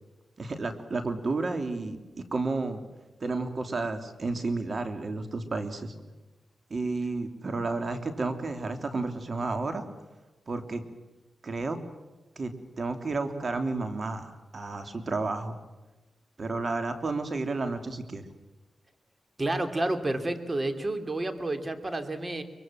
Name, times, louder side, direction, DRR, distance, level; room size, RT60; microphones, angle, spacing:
voice 1, 0.4-2.0 2.3-2.8 3.2-5.9 6.7-9.8 10.5-10.8 11.4-11.8 12.4-15.5 16.4-18.2, right 3 dB, 50° right, 7 dB, 3.2 m, -31 dB
voice 2, 19.4-22.4, right 2 dB, 35° right, 8 dB, 3.0 m, -30 dB
24.0 x 23.0 x 7.6 m, 1.1 s
cardioid pair, 60°, 0 cm